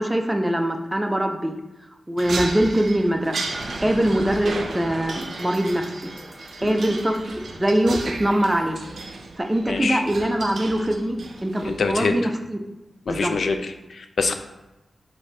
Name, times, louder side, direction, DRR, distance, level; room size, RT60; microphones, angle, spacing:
voice 1, 0.0-1.5 2.1-3.4 3.8-6.1 6.6-8.8 9.4-12.6 13.1-13.3, right 1 dB, 15° right, 4 dB, 0.4 m, -23 dB
sound 1, 2.2-11.9, right 3 dB, 70° right, 0.5 m, -35 dB
sound 2, 3.5-8.9, right 1 dB, 40° right, 1.2 m, -39 dB
voice 2, 9.7-10.0 11.6-12.2 13.1-14.3, left 4 dB, 70° left, 7 dB, 0.4 m, -25 dB
5.1 x 2.6 x 3.9 m, 0.99 s
wide cardioid pair, 125°, 0 cm